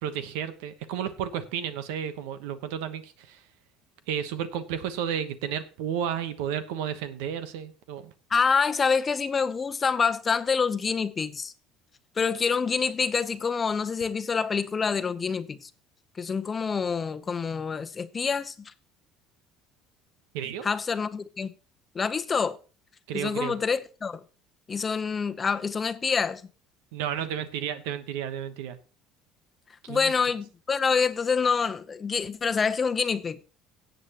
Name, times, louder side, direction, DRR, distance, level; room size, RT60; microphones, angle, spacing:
voice 1, 0.0-3.4 4.1-8.1 20.3-20.7 23.1-23.5 26.9-28.8 29.8-30.1, right 9 dB, 85° right, 1.1 m, -32 dB
voice 2, 8.3-11.5 12.2-15.7 16.2-18.7 20.6-21.5 21.9-22.6 23.1-24.2 24.7-26.4 29.9-33.4, left 5 dB, 30° left, 0.8 m, -26 dB
16.5 x 8.0 x 3.0 m
supercardioid pair, 95°, 0 cm